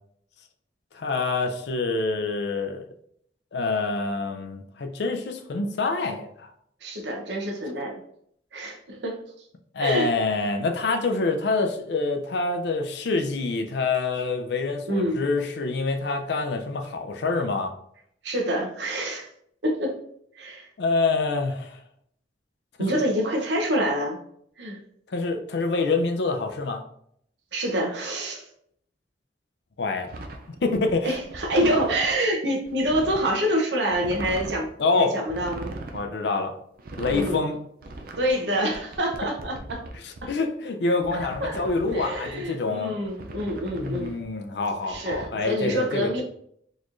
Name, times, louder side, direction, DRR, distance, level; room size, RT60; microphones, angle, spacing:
voice 1, 0.9-2.8 3.5-6.5 9.7-17.7 20.8-21.8 25.1-26.8 29.8-30.1 30.6-31.1 31.6-31.7 34.8-35.1 35.9-36.5 37.0-37.6 40.0-43.0 43.8-46.1, left 3 dB, 70° left, 5 dB, 0.5 m, -26 dB
voice 2, 6.8-8.0 8.5-9.2 9.8-10.1 14.9-15.2 18.2-19.3 19.6-20.0 20.3-20.7 22.8-24.2 24.6-24.8 27.5-28.5 31.0-35.7 37.1-37.4 38.2-39.8 40.2-40.3 41.1-41.6 41.9-44.1 44.9-46.2, equal, 80° right, 1 dB, 0.8 m, -26 dB
sound 1, 30.1-32.1 32.6-33.3 33.9-34.7 35.3-36.1 36.7-37.4 37.8-40.3 41.0-42.4 43.0-44.2 44.9-45.3, right 2 dB, 60° right, 0.4 m, -39 dB
4.0 x 3.0 x 2.5 m, 0.70 s
head